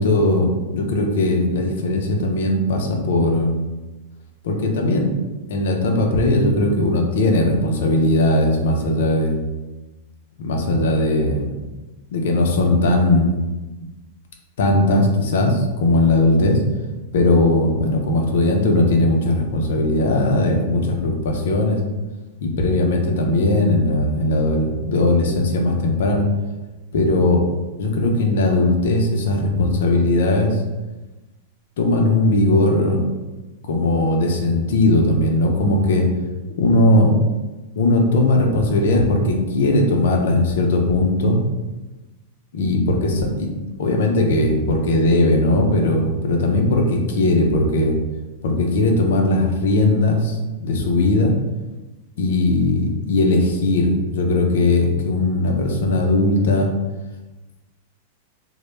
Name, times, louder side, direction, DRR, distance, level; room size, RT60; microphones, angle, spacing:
voice 1, 0.0-3.6 4.4-5.1 5.5-9.4 10.4-11.5 12.1-13.3 14.6-16.6 17.1-21.8 22.4-26.3 26.9-27.4 27.8-30.6 31.8-33.0 33.7-36.1 36.6-37.1 37.8-41.4 42.5-43.5 43.8-48.0 48.4-51.3 52.2-56.7, left 2 dB, 75° left, 2 dB, 0.5 m, -18 dB
2.0 x 2.0 x 3.0 m, 1.1 s
hypercardioid pair, 115°, 0 cm